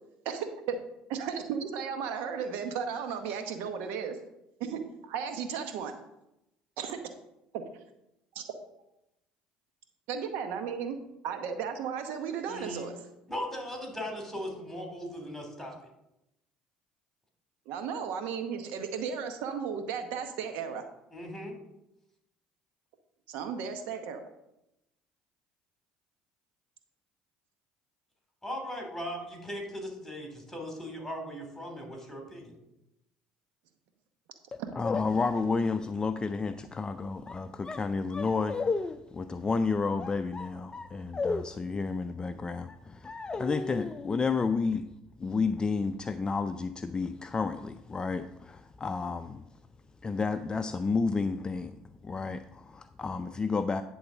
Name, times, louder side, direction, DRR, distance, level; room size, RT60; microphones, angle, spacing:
voice 1, 0.2-0.8 1.1-4.2 4.7-4.8 5.1-6.0 6.8-7.0 7.5-7.8 8.3-8.4 10.1-11.0 11.2-12.9 17.7-20.8 23.3-24.2 34.6-34.7, right 7 dB, 75° right, 7 dB, 0.9 m, -34 dB
voice 2, 12.5-12.9 13.3-15.9 21.1-21.5 28.4-32.5, equal, 5° left, 1 dB, 3.4 m, -38 dB
voice 3, 34.5-44.9 45.2-49.4 50.0-51.7 52.0-53.8, left 4 dB, 25° left, 9 dB, 0.4 m, -31 dB
9.5 x 3.9 x 7.1 m, 0.88 s
hypercardioid pair, 70°, 3 cm